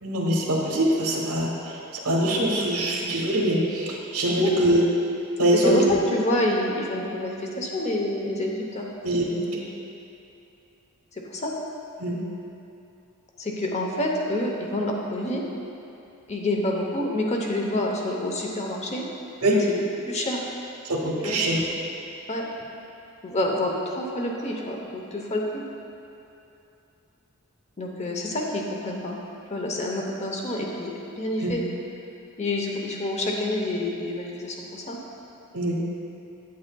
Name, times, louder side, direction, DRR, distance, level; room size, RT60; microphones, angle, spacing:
voice 1, 0.0-4.9 5.4-5.9 9.0-9.6 12.0-12.2 19.4-19.6 20.8-21.7 31.4-31.5 35.5-35.8, right 1 dB, 90° right, -2 dB, 1.1 m, -23 dB
voice 2, 5.6-8.9 11.1-11.5 13.4-15.4 16.3-19.1 19.5-20.4 21.2-21.4 22.3-22.4 23.2-25.6 27.8-29.2 29.5-31.6 32.4-35.0, left 1 dB, 30° left, -1 dB, 0.7 m, -28 dB
8.6 x 8.6 x 2.3 m, 2.9 s
head